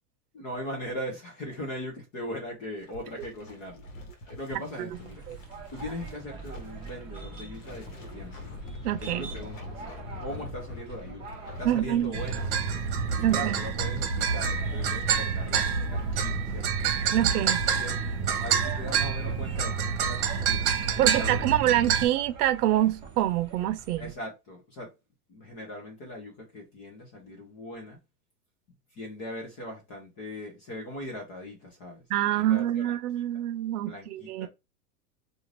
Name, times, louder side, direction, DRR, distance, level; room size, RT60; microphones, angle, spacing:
voice 1, 0.3-3.9 4.2-5.2 5.7-8.4 9.0-9.8 10.2-11.2 11.6-12.6 13.2-16.7 17.8-18.0 18.4-20.7 21.0-21.5 21.9-22.0 24.0-24.9 25.3-28.0 28.9-32.9 33.9-34.5, left 1 dB, 20° left, 0.4 m, -40 dB
sound 1, 2.8-21.3, left 2 dB, 55° left, 1.2 m, -45 dB
sound 2, 4.9-24.1, right 3 dB, 10° right, 0.8 m, -44 dB
voice 2, 8.8-9.2 11.6-12.1 13.2-13.6 17.1-17.6 21.0-24.1 32.1-34.5, right 13 dB, 75° right, 0.7 m, -26 dB
sound 3, 12.1-22.1, right 6 dB, 50° right, 1.0 m, -27 dB
2.5 x 2.5 x 3.1 m
supercardioid pair, 165°, 46 cm